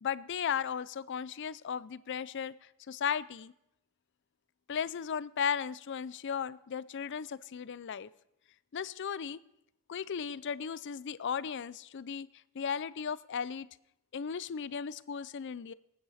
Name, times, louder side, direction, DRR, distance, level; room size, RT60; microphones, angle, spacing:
voice 1, 0.0-3.5 4.7-8.1 8.7-9.4 9.9-12.3 12.5-13.7 14.1-15.7, left 7 dB, 55° left, 18 dB, 0.4 m, -36 dB
24.5 x 9.5 x 4.2 m, 0.81 s
head